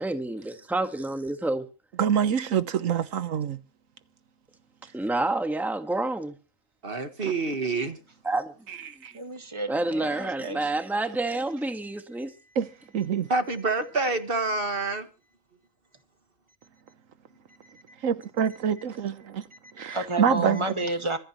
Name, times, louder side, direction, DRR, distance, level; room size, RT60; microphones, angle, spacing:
voice 1, 0.0-1.7 4.9-6.3 8.2-8.5 9.7-12.3, right 2 dB, ahead, 1.5 m, -28 dB
voice 2, 2.0-3.6 7.2-7.3 8.7-9.1 12.6-12.7 12.9-13.3 18.0-19.5 19.8-20.7, right 8 dB, 85° right, 1.4 m, -26 dB
voice 3, 6.8-8.0 13.3-15.1, right 3 dB, 45° right, 1.9 m, -27 dB
voice 4, 9.1-10.7 19.8-21.2, right 2 dB, 20° right, 1.8 m, -31 dB
26.0 x 8.9 x 3.1 m
omnidirectional pair, 1.3 m